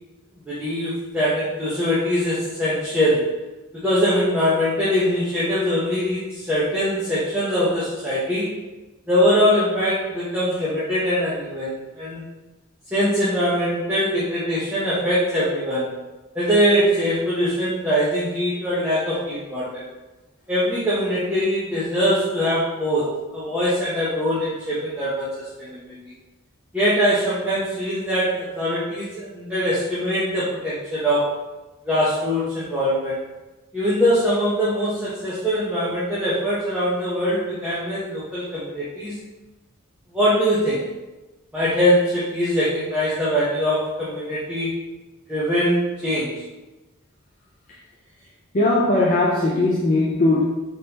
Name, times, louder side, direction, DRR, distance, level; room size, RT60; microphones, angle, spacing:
voice 1, 0.5-3.4 3.7-8.5 9.1-12.3 12.9-15.9 16.3-19.8 20.5-25.9 26.7-31.3 31.8-33.2 33.7-39.1 40.1-40.9 41.5-44.8 45.3-46.4, equal, 5° right, -11 dB, 0.8 m, -22 dB
voice 2, 48.5-50.4, left 2 dB, 35° left, -4 dB, 0.4 m, -19 dB
4.2 x 3.5 x 2.9 m, 1.1 s
head